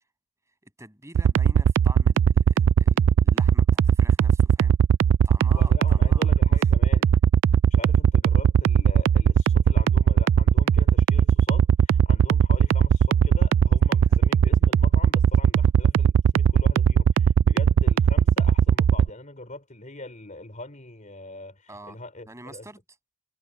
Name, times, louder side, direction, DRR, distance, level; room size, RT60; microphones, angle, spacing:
voice 1, 0.6-4.7 5.2-6.3 14.1-14.2 21.7-22.0 22.3-22.8, right 2 dB, 15° right, 7.3 m, -46 dB
sound 1, 1.1-19.1, right 8 dB, 70° right, 0.3 m, -18 dB
voice 2, 5.5-7.1 7.7-22.7, left 2 dB, 40° left, 3.9 m, -42 dB
head